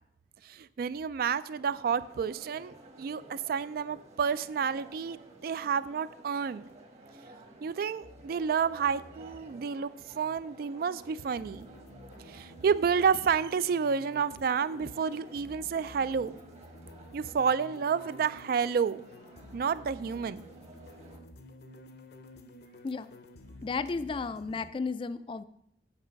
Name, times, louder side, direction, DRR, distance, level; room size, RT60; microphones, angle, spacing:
voice 1, 0.4-6.7 7.6-9.9 10.2-11.7 12.3-16.3 17.1-19.0 19.5-20.4, right 6 dB, 55° right, 16 dB, 0.3 m, -30 dB
sound 1, 1.5-21.2, right 2 dB, 40° right, 1.2 m, -53 dB
Ambient Electronic Backing Track, 8.0-24.7, left 1 dB, 65° left, 0.7 m, -52 dB
voice 2, 23.6-25.4, left 4 dB, 30° left, 14 dB, 0.3 m, -33 dB
8.1 x 5.5 x 5.1 m, 0.72 s
head